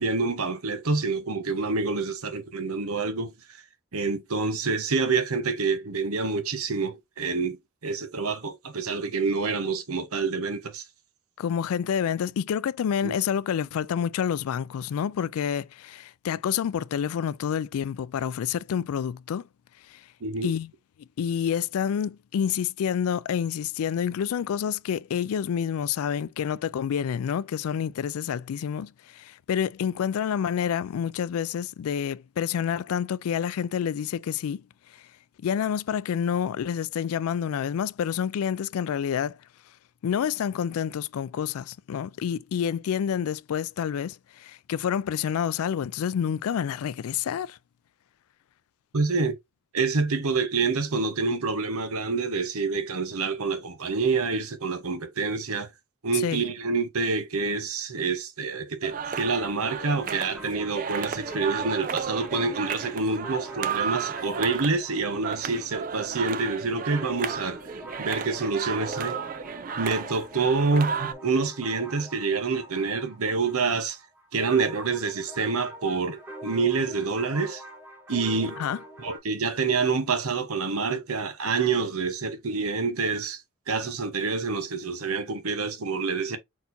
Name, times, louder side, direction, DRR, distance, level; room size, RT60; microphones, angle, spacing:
voice 1, 0.0-3.3 3.9-7.6 7.8-10.8 13.0-13.2 20.2-20.5 48.9-49.3 49.7-55.7 56.0-67.6 68.0-69.2 69.8-74.0 74.3-77.6 78.1-78.6 79.0-83.4 83.7-86.4, right 4 dB, 80° right, 1.0 m, -27 dB
voice 2, 11.4-19.5 19.9-20.0 20.4-20.7 21.2-34.6 35.4-39.4 40.0-47.6 56.1-56.4 78.6-78.8, left 8 dB, 75° left, 0.3 m, -28 dB
sound 1, 58.8-71.1, right 6 dB, 35° right, 0.4 m, -34 dB
sound 2, 59.6-79.2, right 1 dB, 10° right, 1.1 m, -44 dB
4.4 x 4.1 x 2.6 m
head